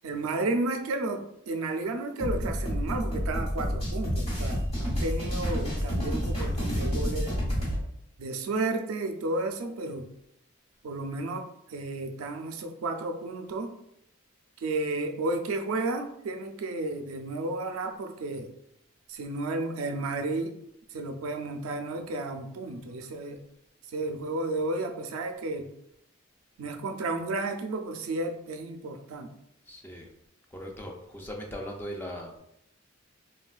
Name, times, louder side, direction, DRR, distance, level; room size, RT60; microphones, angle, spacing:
voice 1, 0.0-7.4 8.2-10.1 10.8-13.7 14.6-18.5 19.1-20.6 20.9-23.4 23.9-25.7 26.6-29.3, right 2 dB, 90° right, 0.4 m, -32 dB
sound 1, 2.2-7.8, equal, 30° left, 1.0 m, -29 dB
voice 2, 29.7-30.1 30.5-32.4, equal, 10° left, 0.3 m, -39 dB
3.2 x 2.2 x 2.3 m
head